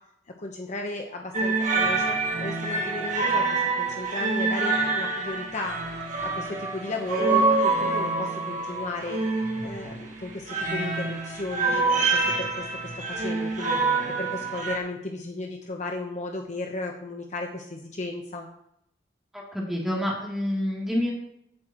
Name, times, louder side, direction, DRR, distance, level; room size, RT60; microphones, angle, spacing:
voice 1, 0.4-5.8 6.4-9.2 9.6-13.9 14.2-18.5, left 2 dB, 40° left, 2 dB, 1.1 m, -35 dB
sound 1, 1.3-14.8, right 3 dB, 45° right, 1.8 m, -26 dB
voice 2, 19.3-21.1, left 1 dB, ahead, -4 dB, 3.1 m, -28 dB
17.0 x 8.0 x 3.1 m, 0.75 s
head